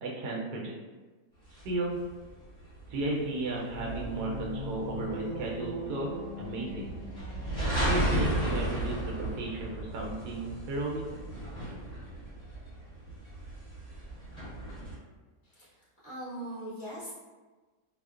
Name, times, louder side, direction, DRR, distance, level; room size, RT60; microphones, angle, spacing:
voice 1, 0.0-0.7 1.5-2.0 2.9-6.1 6.4-6.9 7.8-11.0, right 2 dB, 75° right, -2 dB, 1.2 m, -34 dB
sound 1, 1.6-14.9, right 1 dB, 5° left, 0.9 m, -34 dB
sound 2, 3.7-9.9, equal, 65° left, 1.0 m, -41 dB
voice 2, 15.4-17.1, right 1 dB, 40° left, -10 dB, 0.8 m, -41 dB
2.8 x 2.1 x 2.4 m, 1.3 s
omnidirectional pair, 1.8 m